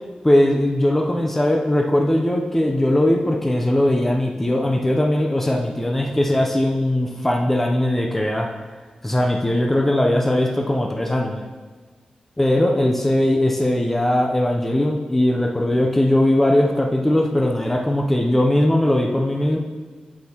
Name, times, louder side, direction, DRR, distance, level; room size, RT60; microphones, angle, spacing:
voice 1, 0.2-8.5 9.0-11.5 12.4-19.6, left 1 dB, 10° left, 1 dB, 0.6 m, -19 dB
8.4 x 8.0 x 2.9 m, 1.4 s
wide cardioid pair, 160°, 2 cm